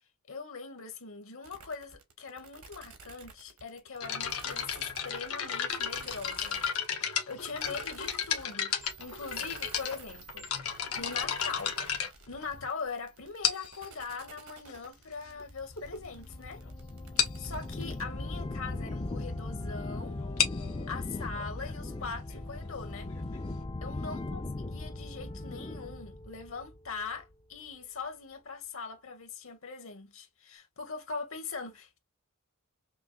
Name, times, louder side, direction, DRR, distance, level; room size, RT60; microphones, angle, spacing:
voice 1, 0.3-10.5 11.0-11.7 12.3-16.6 17.4-20.2 20.9-23.1 23.8-32.0, left 4 dB, 65° left, 1.6 m, -41 dB
sound 1, 1.4-18.0, right 5 dB, 85° right, 1.3 m, -52 dB
sound 2, 4.0-12.8 13.4-13.9 14.7-14.8 15.4-15.5 15.8-16.0 16.3-16.4 16.7-16.8 17.2-17.5 20.2-23.6, left 8 dB, 85° left, 1.3 m, -34 dB
sound 3, 15.3-27.3, left 2 dB, 25° left, 0.4 m, -39 dB
5.8 x 2.5 x 2.4 m
head